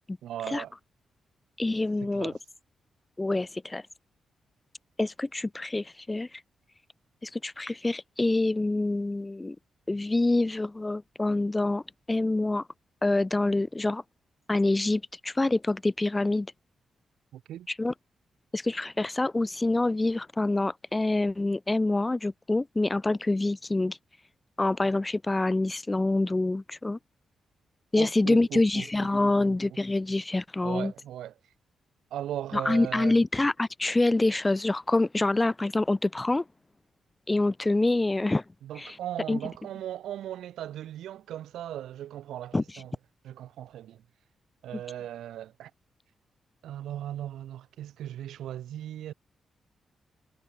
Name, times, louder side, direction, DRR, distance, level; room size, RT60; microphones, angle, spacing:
voice 1, 0.2-0.7 2.0-2.4 17.3-17.7 28.0-29.8 30.6-31.3 32.1-33.2 38.6-42.9 43.2-44.0 44.6-45.7 46.6-49.1, right 11 dB, 80° right, 6.9 m, -38 dB
voice 2, 1.6-2.3 3.2-3.8 5.0-6.3 7.2-9.6 9.9-11.8 12.1-12.6 13.0-14.0 14.5-16.5 17.8-17.9 18.5-24.0 24.6-27.0 27.9-30.9 32.5-36.4 37.3-38.4 38.8-38.9 39.3-39.4 42.5-42.6, left 2 dB, 25° left, 0.7 m, -26 dB
supercardioid pair, 45°, 0 cm